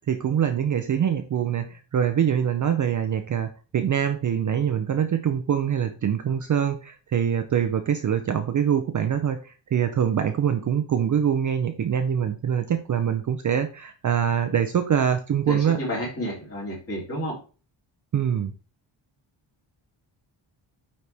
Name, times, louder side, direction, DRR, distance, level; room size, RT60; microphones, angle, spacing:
voice 1, 0.1-15.8 18.1-18.5, right 8 dB, 40° right, 7 dB, 0.5 m, -24 dB
voice 2, 15.4-17.4, equal, 30° left, -4 dB, 3.0 m, -31 dB
9.2 x 4.2 x 3.4 m, 0.35 s
wide cardioid pair, 175°, 49 cm